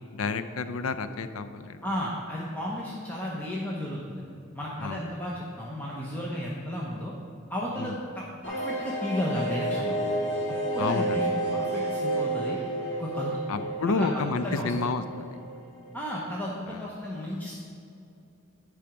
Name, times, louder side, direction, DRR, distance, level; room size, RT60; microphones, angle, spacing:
voice 1, 0.1-1.8 4.8-5.0 7.8-7.9 10.8-11.2 13.5-15.0 16.7-16.8, left 4 dB, 80° left, 11 dB, 0.5 m, -30 dB
voice 2, 1.8-4.2 4.5-7.1 7.5-10.0 10.5-12.6 13.0-14.7 15.9-17.5, equal, 10° left, -5 dB, 0.8 m, -33 dB
sound 1, 8.4-15.9 16.2-16.3 16.5-16.6, right 1 dB, 55° left, 1.9 m, -31 dB
10.5 x 4.9 x 5.9 m, 2.6 s
head